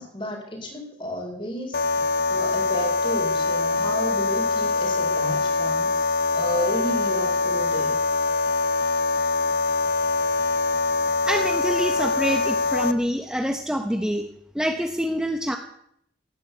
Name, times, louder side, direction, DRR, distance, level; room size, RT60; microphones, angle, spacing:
voice 1, 0.0-2.0 2.3-8.0, equal, 30° left, 3 dB, 4.3 m, -32 dB
sound 1, 1.7-12.9, left 3 dB, 60° left, 0.9 m, -23 dB
voice 2, 11.3-14.2 14.5-15.6, equal, 5° right, 4 dB, 1.0 m, -26 dB
17.5 x 10.0 x 8.1 m, 0.71 s
head